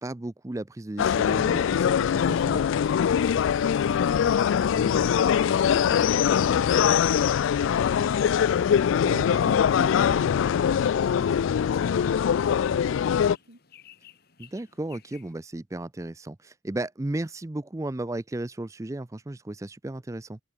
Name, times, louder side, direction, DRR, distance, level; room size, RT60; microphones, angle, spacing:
voice 1, 0.0-2.6 9.0-9.4 9.7-9.9 14.4-20.4, right 1 dB, 15° right, 0.4 m, -34 dB
sound 1, 1.0-13.4, left 8 dB, 75° left, 0.3 m, -22 dB
sound 2, 2.1-15.3, left 9 dB, 50° left, 2.5 m, -56 dB
voice 2, 3.3-8.7 9.2-13.6, right 1 dB, 75° right, 5.1 m, -48 dB
head